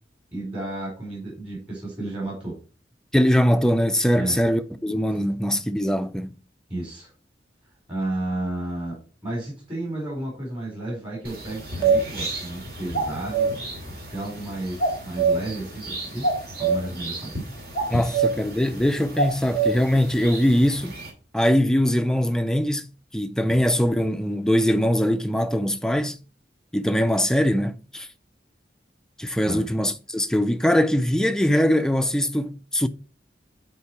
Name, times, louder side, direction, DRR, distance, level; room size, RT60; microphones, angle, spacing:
voice 1, 0.3-2.6 4.1-4.4 5.1-5.2 6.7-7.1 7.9-9.0 9.2-13.5 14.1-16.3 16.6-17.3 29.4-29.6, right 2 dB, 30° right, 4.2 m, -32 dB
voice 2, 3.1-6.3 17.9-20.9 21.3-22.9 23.1-26.2 26.7-28.1 29.2-32.9, equal, 5° left, 0.4 m, -22 dB
sound 1, 11.2-21.1, right 4 dB, 55° right, 2.7 m, -27 dB
8.5 x 4.5 x 4.7 m
head